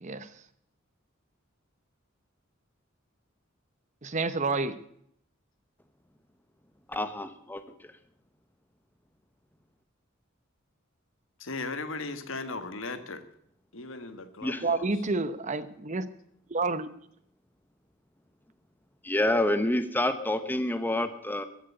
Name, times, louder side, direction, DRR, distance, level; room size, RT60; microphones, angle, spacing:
voice 1, 0.0-0.3 4.0-4.8 14.6-16.1 16.5-16.9, right 3 dB, 35° right, 14 dB, 0.8 m, -29 dB
voice 2, 6.9-7.6 14.4-14.6 19.0-21.4, left 1 dB, 10° left, 10 dB, 1.0 m, -28 dB
voice 3, 11.4-13.2 13.7-14.9, left 3 dB, 75° left, 10 dB, 1.5 m, -37 dB
14.5 x 7.6 x 9.6 m, 0.70 s
head